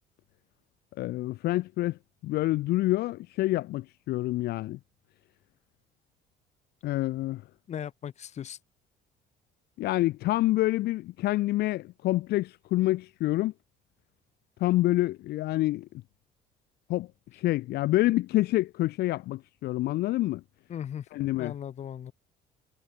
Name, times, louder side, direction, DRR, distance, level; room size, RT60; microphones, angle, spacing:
voice 1, 1.0-2.0 2.2-4.8 6.8-7.4 9.8-13.5 14.6-15.9 16.9-17.1 17.3-20.4 21.1-21.5, left 17 dB, 70° left, 0.6 m, -27 dB
voice 2, 7.7-8.6 20.7-21.1 21.4-22.1, left 9 dB, 45° left, 0.9 m, -37 dB
cardioid pair, 110°, 17 cm